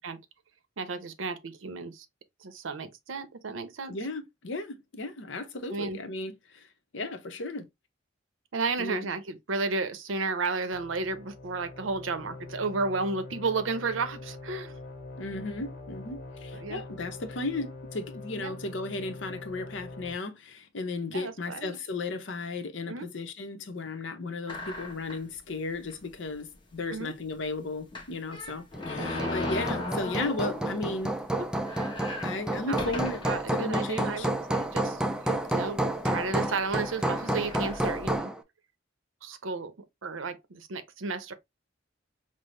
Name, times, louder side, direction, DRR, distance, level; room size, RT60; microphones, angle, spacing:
voice 1, 0.8-2.1 2.4-4.0 5.7-6.0 8.5-14.8 16.5-16.8 18.4-18.6 21.1-21.8 22.9-23.1 26.9-27.1 29.0-29.4 31.4-31.5 32.7-32.8 33.2-38.3 39.2-39.7 40.0-41.3, right 4 dB, 85° right, 0.7 m, -33 dB
voice 2, 3.9-6.7 6.9-7.7 8.8-9.1 15.2-31.2 32.2-33.2 33.5-34.3, left 3 dB, 70° left, 0.7 m, -35 dB
sound 1, 10.7-20.1, left 3 dB, 45° left, 1.4 m, -44 dB
sound 2, 24.5-25.3 25.9-26.0 26.3-26.4 27.9-30.8 31.2-31.3 31.6-33.4 34.1-34.2 35.1-35.3 36.1-36.2 36.6-38.2, left 2 dB, 25° left, 0.9 m, -37 dB
Hammer, 28.7-38.4, right 1 dB, 5° right, 0.3 m, -30 dB
5.4 x 2.0 x 3.1 m
head